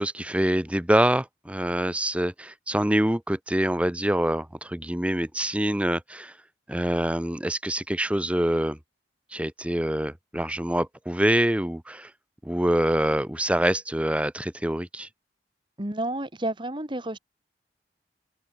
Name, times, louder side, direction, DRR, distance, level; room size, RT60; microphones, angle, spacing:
voice 1, 0.0-6.3 6.7-8.8 9.3-12.1 12.4-15.1, right 1 dB, 5° right, 0.9 m, -25 dB
voice 2, 15.8-17.2, right 1 dB, 25° right, 2.0 m, -30 dB
open air
head